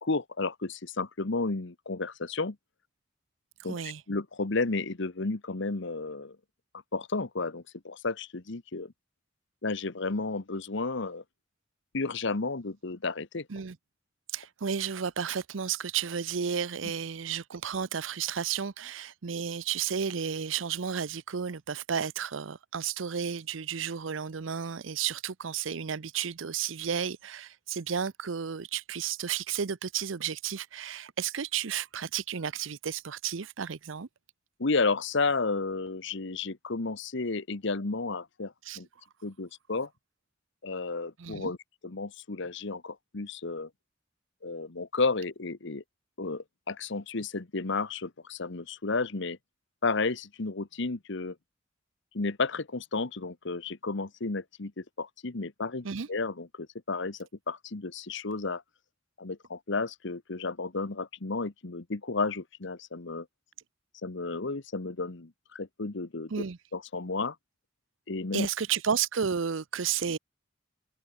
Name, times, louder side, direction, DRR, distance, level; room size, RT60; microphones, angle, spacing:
voice 1, 0.0-2.6 3.6-3.8 4.1-6.4 6.9-8.9 9.6-11.2 11.9-13.5 34.6-38.9 39.2-39.9 40.6-41.6 41.8-43.7 44.4-45.8 46.2-49.4 49.8-51.4 52.1-58.6 59.2-63.3 64.0-66.3 66.7-67.4 68.1-68.5, left 3 dB, 65° left, 1.2 m, -32 dB
voice 2, 3.7-4.0 13.5-13.8 14.3-34.1 38.6-38.8 41.2-41.5 55.8-56.1 66.3-66.6 68.3-70.2, right 7 dB, 75° right, 0.7 m, -32 dB
head